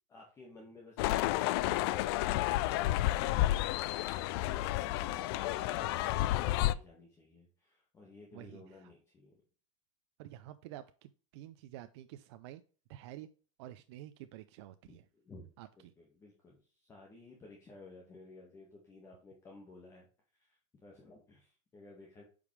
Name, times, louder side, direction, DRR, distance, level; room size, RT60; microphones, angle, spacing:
voice 1, 0.1-2.7 3.2-9.4 14.9-15.5 16.0-20.1 20.4-20.5 20.8-22.2, left 2 dB, 15° left, -2 dB, 1.7 m, -55 dB
sound 1, 1.0-6.7, left 15 dB, 50° left, 0.4 m, -31 dB
voice 2, 8.3-8.9 10.2-12.6 12.9-13.3 13.6-15.1 15.6-15.9, right 13 dB, 60° right, 10 dB, 0.5 m, -50 dB
8.3 x 5.1 x 3.3 m, 0.38 s
supercardioid pair, 155°, 16 cm